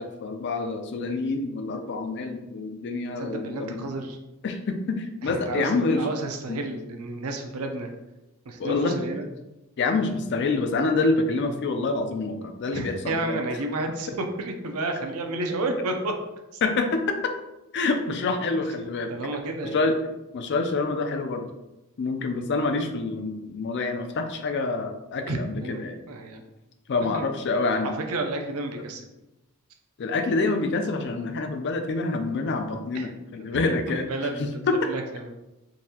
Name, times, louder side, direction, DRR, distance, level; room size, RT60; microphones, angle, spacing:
voice 1, 0.0-3.8 4.4-6.1 6.5-6.6 8.6-9.0 9.8-13.4 16.6-17.2 17.7-19.1 19.7-20.0 20.3-21.5 22.0-26.0 26.9-27.9 30.0-34.9, left 3 dB, 50° left, 6 dB, 0.4 m, -27 dB
voice 2, 3.2-4.2 5.2-7.9 8.5-9.3 12.7-16.1 16.5-16.6 19.1-19.8 25.3-26.4 27.1-27.2 28.0-29.1 32.9-33.1 33.5-33.6 33.9-34.6 34.9-35.3, right 2 dB, 75° right, 4 dB, 0.5 m, -31 dB
3.9 x 2.6 x 2.8 m, 0.96 s
head